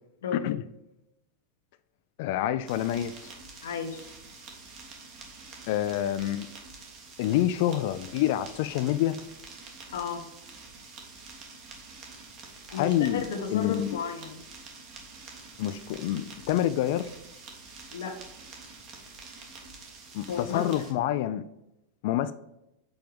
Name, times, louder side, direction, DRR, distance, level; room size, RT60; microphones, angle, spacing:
voice 1, 2.2-3.3 5.7-6.5 7.2-9.2 12.7-14.0 15.6-17.1 20.1-21.4 22.0-22.3, left 12 dB, 60° left, 0.4 m, -27 dB
sound 1, 2.7-20.9, right 4 dB, 40° right, 1.5 m, -47 dB
voice 2, 3.6-4.1 9.9-10.3 12.7-14.4 17.9-18.2 20.3-20.8, left 6 dB, 90° left, 1.0 m, -33 dB
5.3 x 4.5 x 5.2 m
supercardioid pair, 140°, 0 cm